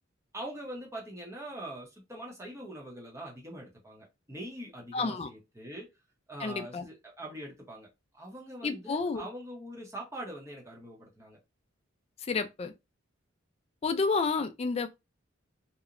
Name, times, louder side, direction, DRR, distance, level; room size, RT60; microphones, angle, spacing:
voice 1, 0.3-5.9 6.3-7.9 8.1-11.4, right 1 dB, 15° right, 0.7 m, -43 dB
voice 2, 4.9-5.3 6.4-6.9 8.6-9.2 12.3-12.7 13.8-14.9, left 4 dB, 30° left, 0.3 m, -30 dB
2.8 x 2.0 x 2.4 m
head